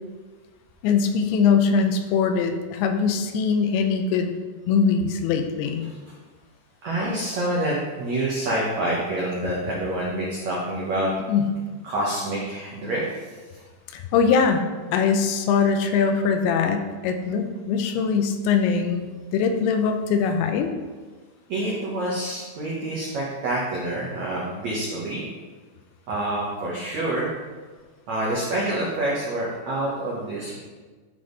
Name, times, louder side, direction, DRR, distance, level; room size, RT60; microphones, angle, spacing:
voice 1, 0.8-4.3 4.7-5.9 11.3-11.5 13.9-14.6 14.9-20.7, left 6 dB, 85° left, 6 dB, 2.9 m, -22 dB
voice 2, 6.8-11.1 11.8-13.6 21.5-25.2 26.1-27.3 28.1-30.6, right 1 dB, 80° right, -5 dB, 1.5 m, -27 dB
12.0 x 5.2 x 4.0 m, 1.4 s
omnidirectional pair, 5.3 m